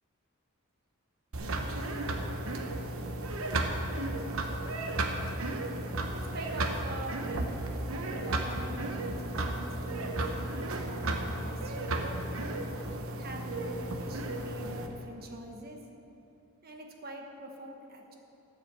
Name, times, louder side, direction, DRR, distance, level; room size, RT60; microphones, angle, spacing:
sound 1, 1.3-14.9, right 2 dB, 70° right, 1.0 m, -34 dB
voice 1, 6.1-12.3 13.2-15.8 16.6-18.1, right 1 dB, 45° right, 2 dB, 1.2 m, -44 dB
13.5 x 5.8 x 7.5 m, 2.9 s
head